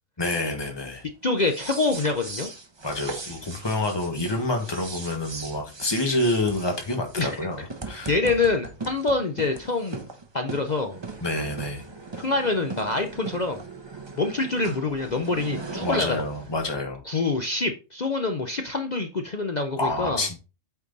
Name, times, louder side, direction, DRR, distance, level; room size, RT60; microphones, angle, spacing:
voice 1, 0.2-1.0 2.8-8.1 11.2-11.8 15.8-17.0 19.8-20.4, left 2 dB, 20° left, 1.5 m, -28 dB
voice 2, 1.2-2.5 7.2-7.4 8.1-10.0 10.3-11.0 12.2-13.6 14.2-16.2 17.1-20.2, left 3 dB, 40° left, 0.7 m, -26 dB
sound 1, 1.3-16.6, right 3 dB, 25° right, 0.9 m, -39 dB
8.4 x 4.6 x 4.0 m
omnidirectional pair, 1.4 m